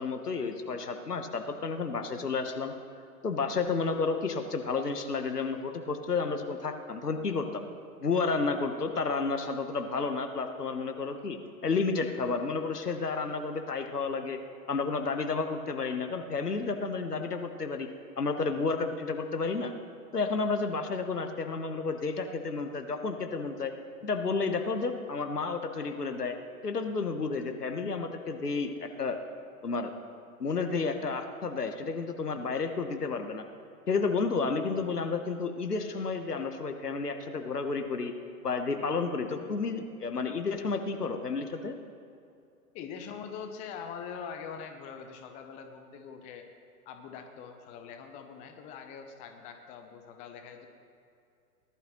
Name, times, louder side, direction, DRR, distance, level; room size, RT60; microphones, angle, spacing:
voice 1, 0.0-2.7 3.2-7.6 8.0-11.4 11.6-14.4 14.7-17.9 18.2-19.7 20.1-23.7 24.0-26.4 26.6-29.2 29.6-29.9 30.4-33.4 33.9-38.1 38.4-41.8, left 4 dB, 80° left, 6 dB, 1.2 m, -31 dB
voice 2, 42.7-46.5 46.9-50.7, left 6 dB, 15° left, 5 dB, 0.6 m, -43 dB
18.5 x 11.5 x 3.1 m, 2.6 s
figure-of-eight pair, 105°, 46 cm